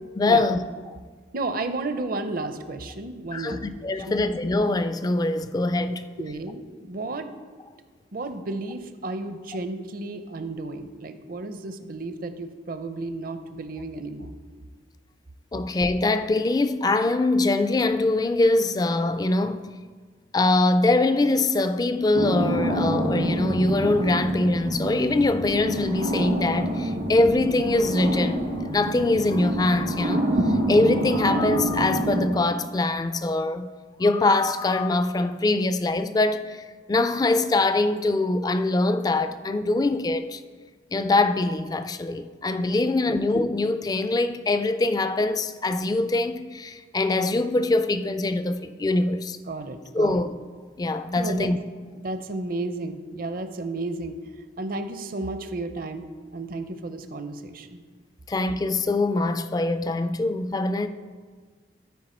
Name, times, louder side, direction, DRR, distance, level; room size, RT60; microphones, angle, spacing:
voice 1, 0.2-0.6 3.3-6.0 15.5-19.7 20.3-30.3 30.7-33.7 34.0-40.4 40.9-49.4 49.9-50.3 50.8-51.6 58.3-60.9, left 2 dB, 20° left, 0.3 m, -23 dB
voice 2, 1.3-3.6 4.0-4.2 6.2-7.3 8.1-14.3 43.1-43.2 49.5-50.2 51.1-51.5 52.0-56.1 56.3-57.8, right 2 dB, 50° right, 0.6 m, -33 dB
sound 1, 22.1-32.3, right 1 dB, 80° right, 1.7 m, -27 dB
13.0 x 4.8 x 4.3 m
head